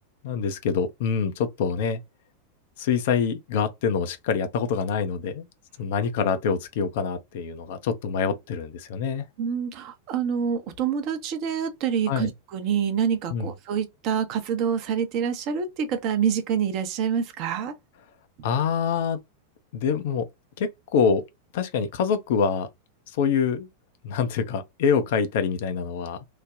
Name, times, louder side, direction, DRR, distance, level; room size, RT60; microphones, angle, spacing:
voice 1, 0.2-2.0 2.8-5.5 5.8-9.3 12.1-12.3 13.3-13.5 18.4-19.2 19.7-20.3 20.6-21.2 21.5-22.7 23.1-23.7 24.0-26.3, left 6 dB, 55° left, 0.5 m, -25 dB
voice 2, 9.4-17.7, right 7 dB, 40° right, 0.6 m, -26 dB
3.1 x 2.1 x 2.4 m
figure-of-eight pair, 90°, 0 cm